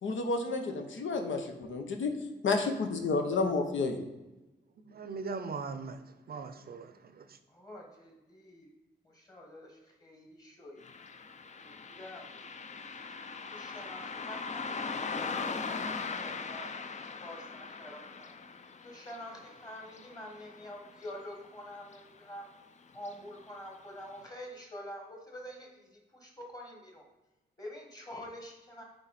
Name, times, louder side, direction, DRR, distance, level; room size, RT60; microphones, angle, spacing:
voice 1, 0.0-2.1 2.4-4.0, left 3 dB, 90° left, 0.9 m, -30 dB
voice 2, 4.9-6.0 6.3-7.2, right 4 dB, 55° right, 0.5 m, -39 dB
voice 3, 7.5-8.7 9.0-10.8 11.6-12.4 12.7-13.0 13.5-16.7 17.2-18.3 18.8-22.5 22.9-27.0 27.6-28.8, left 1 dB, 20° left, 1.5 m, -47 dB
Car passing by, 10.8-21.6 21.9-22.0 23.0-23.1 23.6-23.7 24.2-24.3, left 4 dB, 40° left, 0.5 m, -40 dB
8.9 x 3.2 x 4.2 m
wide cardioid pair, 125°, 19 cm